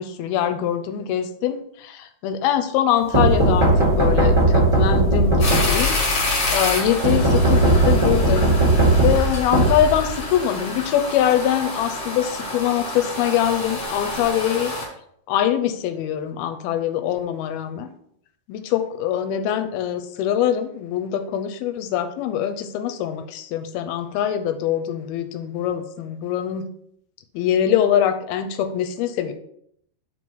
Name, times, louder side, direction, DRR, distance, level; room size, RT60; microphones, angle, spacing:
voice 1, 0.0-8.6 8.8-14.7 15.3-17.9 18.5-26.7 27.3-29.3, left 10 dB, 80° left, 9 dB, 2.4 m, -23 dB
sound 1, 3.1-6.1 7.0-10.4, right 1 dB, 10° right, 1.7 m, -18 dB
sound 2, 5.4-14.8, left 2 dB, 40° left, 1.8 m, -28 dB
5.6 x 4.6 x 6.1 m, 0.70 s
omnidirectional pair, 4.7 m